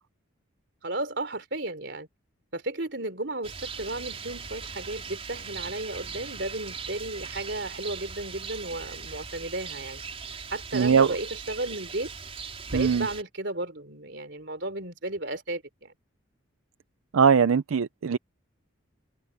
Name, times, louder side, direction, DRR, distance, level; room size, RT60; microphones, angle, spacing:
voice 1, 0.8-2.1 2.5-10.0 10.5-12.1 12.7-15.9, right 2 dB, 55° right, 3.7 m, -34 dB
Rain, 3.4-13.2, right 5 dB, 30° right, 4.9 m, -39 dB
voice 2, 10.7-11.1 12.7-13.1 17.1-18.2, right 6 dB, 90° right, 0.5 m, -21 dB
head